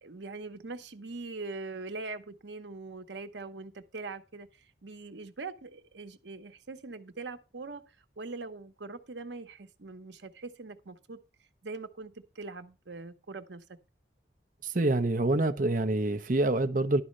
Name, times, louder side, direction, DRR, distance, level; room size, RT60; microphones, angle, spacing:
voice 1, 0.0-11.2 11.6-13.6, right 3 dB, 85° right, 1.0 m, -42 dB
voice 2, 14.6-17.0, right 2 dB, 45° right, 0.8 m, -26 dB
11.0 x 4.2 x 6.5 m
head